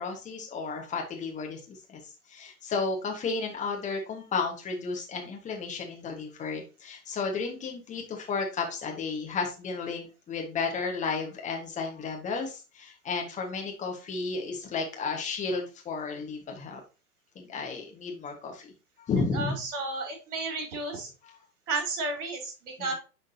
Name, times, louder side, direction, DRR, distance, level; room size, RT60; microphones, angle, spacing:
voice 1, 0.0-16.8 17.3-18.7 19.0-19.6 21.2-21.3 22.8-22.9, left 4 dB, 15° left, 2 dB, 1.4 m, -33 dB
voice 2, 19.3-21.1 21.7-22.9, right 3 dB, 50° right, 0 dB, 4.0 m, -32 dB
9.9 x 3.9 x 2.8 m, 0.32 s
figure-of-eight pair, 105°, 47 cm